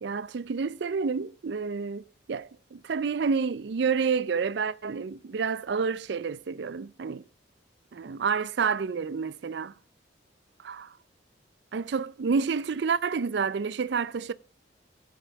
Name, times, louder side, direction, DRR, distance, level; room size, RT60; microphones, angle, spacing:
voice 1, 0.0-7.2 7.9-9.7 10.6-11.0 11.7-14.3, right 5 dB, 65° right, 0.4 m, -29 dB
15.5 x 5.5 x 4.5 m
head